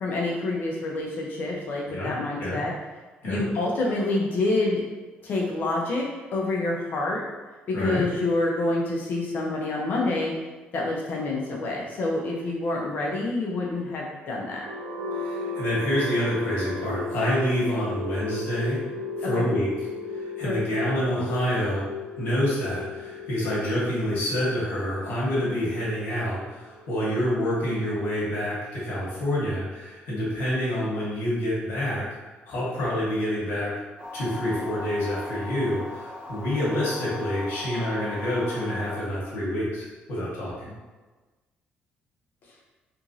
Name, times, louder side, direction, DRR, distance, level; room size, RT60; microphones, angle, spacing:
voice 1, 0.0-2.7 3.3-4.8 5.2-7.2 7.7-10.3 10.7-14.6 19.2-19.5 20.4-20.6, left 2 dB, 55° left, -2 dB, 0.5 m, -27 dB
sound 1, 14.5-28.4, left 3 dB, 70° right, 0.5 m, -35 dB
voice 2, 15.1-18.8 19.2-21.9 22.2-33.7 34.1-40.7, equal, 80° left, -7 dB, 1.1 m, -27 dB
sound 2, 34.0-39.0, left 3 dB, 35° right, 0.9 m, -38 dB
2.9 x 2.5 x 2.6 m, 1.2 s
cardioid pair, 115°, 4 cm